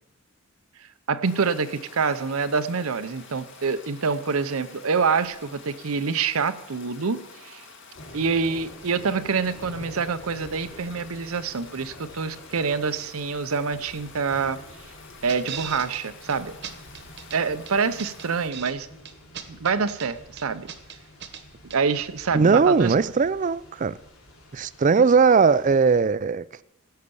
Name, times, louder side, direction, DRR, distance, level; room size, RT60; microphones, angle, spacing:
voice 1, 1.1-7.6 8.1-14.6 15.2-16.5 17.3-18.9 19.5-20.7 21.6-22.9 24.9-25.0, right 5 dB, 80° right, 0.7 m, -26 dB
Stream, 1.2-18.5, left 4 dB, 55° left, 1.9 m, -48 dB
sound 1, 7.9-26.0, left 1 dB, 75° left, 3.2 m, -47 dB
sound 2, 15.3-16.0 16.3-16.4 16.6-17.4 17.7-18.7 19.0-20.1 20.4-21.4 21.7-21.8, right 8 dB, 50° right, 1.1 m, -38 dB
voice 2, 22.3-23.9 24.5-26.6, right 5 dB, 35° right, 0.4 m, -19 dB
16.0 x 6.6 x 7.0 m
head